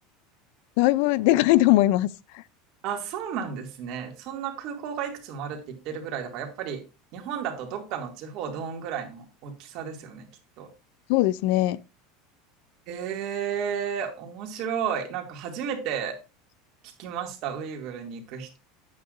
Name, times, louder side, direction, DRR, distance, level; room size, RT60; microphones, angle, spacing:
voice 1, 0.8-2.1 2.3-2.4 11.1-11.8, left 17 dB, 65° left, 0.4 m, -20 dB
voice 2, 2.8-6.8 7.1-10.3 10.6-10.7 12.9-16.2 17.0-18.6, right 7 dB, 50° right, 2.4 m, -33 dB
9.6 x 8.4 x 2.6 m
supercardioid pair, 145°, 0 cm